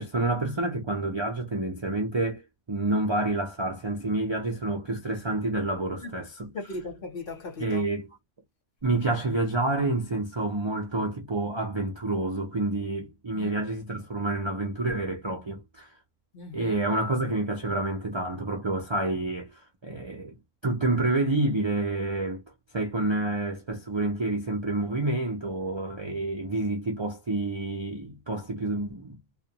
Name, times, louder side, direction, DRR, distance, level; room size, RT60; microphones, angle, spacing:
voice 1, 0.0-6.5 7.6-8.1 8.8-15.9 16.5-20.3 20.6-22.4 22.7-29.2, right 2 dB, 40° right, 0.4 m, -28 dB
voice 2, 6.5-7.9 13.3-13.5 16.3-16.8, left 2 dB, 50° left, 0.9 m, -38 dB
2.4 x 2.1 x 2.8 m
omnidirectional pair, 1.3 m